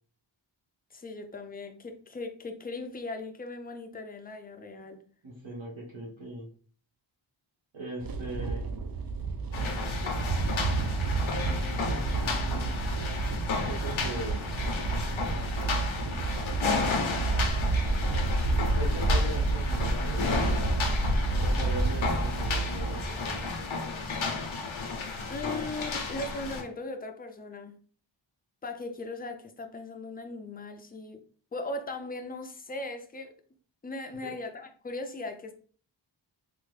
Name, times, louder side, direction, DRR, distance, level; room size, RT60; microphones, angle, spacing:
voice 1, 0.9-5.0 25.3-27.7 28.6-31.2 31.5-33.3 33.8-35.5, left 2 dB, 20° left, 0.4 m, -38 dB
voice 2, 5.2-6.5 7.7-8.6 9.5-10.0 11.5-12.8 13.7-14.4 17.4-17.6 18.7-20.3 21.4-23.5 34.2-34.3, right 1 dB, 75° right, 1.2 m, -39 dB
sound 1, 8.0-23.0, right 3 dB, 50° right, 0.5 m, -30 dB
sound 2, 9.5-26.6, left 4 dB, 80° left, 0.7 m, -33 dB
sound 3, 17.4-23.5, equal, 25° right, 1.2 m, -34 dB
3.5 x 2.1 x 3.2 m
wide cardioid pair, 70°, 47 cm